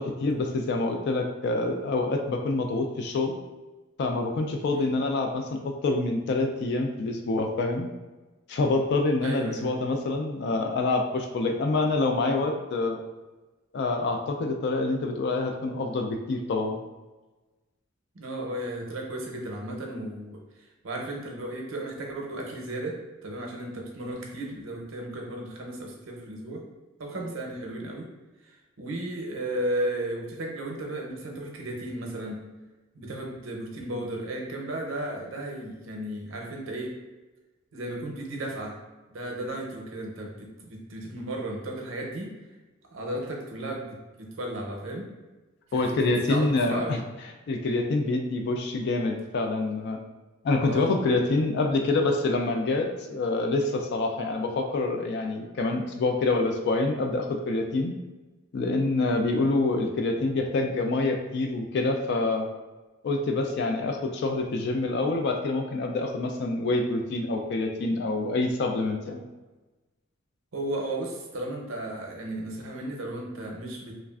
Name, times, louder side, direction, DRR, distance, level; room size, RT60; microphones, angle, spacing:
voice 1, 0.0-3.3 4.0-7.9 8.5-13.0 13.7-16.8 45.7-47.0 47.5-50.0 50.4-57.9 58.5-62.5 63.0-69.2, left 2 dB, 55° left, 4 dB, 0.3 m, -26 dB
voice 2, 9.2-9.7 18.1-26.6 27.0-28.1 28.4-32.4 32.9-37.0 37.7-38.8 39.1-42.3 42.9-45.1 45.7-47.0 50.7-51.0 70.5-73.9, right 1 dB, 70° right, 0 dB, 0.6 m, -34 dB
3.1 x 2.4 x 2.3 m, 1.2 s
head